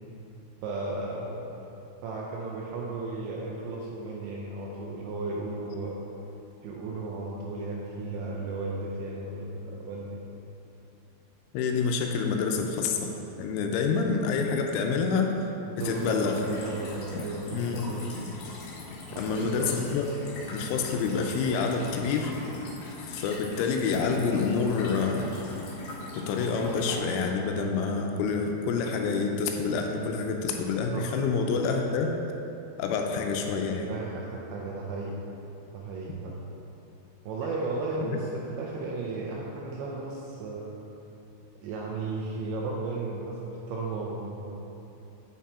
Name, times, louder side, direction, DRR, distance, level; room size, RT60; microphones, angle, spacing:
voice 1, 0.6-1.4 2.0-6.1 6.6-10.2 15.7-18.1 19.1-19.8 30.9-31.1 33.9-35.1 35.7-36.4 37.2-40.8 41.6-44.6, right 3 dB, 80° right, -2 dB, 2.6 m, -35 dB
voice 2, 11.5-13.1 13.4-15.4 15.8-16.4 17.5-17.9 19.2-20.0 20.5-22.3 23.1-25.4 26.1-32.1 32.8-33.9 38.0-38.2, left 5 dB, 85° left, 3 dB, 3.1 m, -27 dB
sound 1, 15.8-27.0, left 3 dB, 60° left, 2.5 m, -41 dB
9.1 x 6.0 x 4.2 m, 2.9 s
omnidirectional pair, 5.8 m